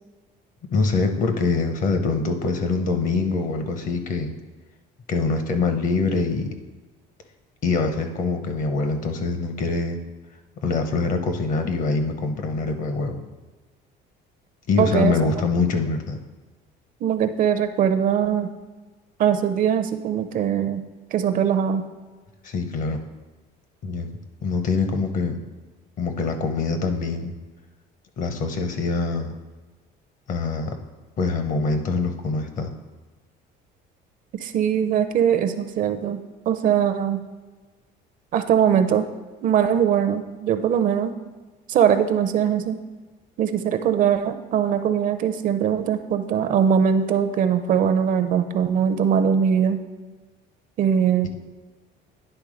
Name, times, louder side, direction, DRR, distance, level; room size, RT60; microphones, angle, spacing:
voice 1, 0.7-4.3 5.1-6.5 7.6-10.0 10.6-13.2 14.7-16.2 22.4-23.0 23.8-24.1 24.4-25.4 26.0-27.3 28.2-29.3 30.3-30.8 31.2-32.7 51.2-51.3, left 4 dB, 45° left, 7 dB, 0.8 m, -24 dB
voice 2, 14.8-15.1 17.0-18.5 19.2-20.8 21.1-21.8 34.3-37.2 38.3-39.1 39.4-41.1 41.7-42.8 43.4-49.8 50.8-51.3, right 8 dB, 45° right, 8 dB, 0.5 m, -21 dB
10.0 x 3.5 x 4.9 m, 1.3 s
cardioid pair, 150°, 18 cm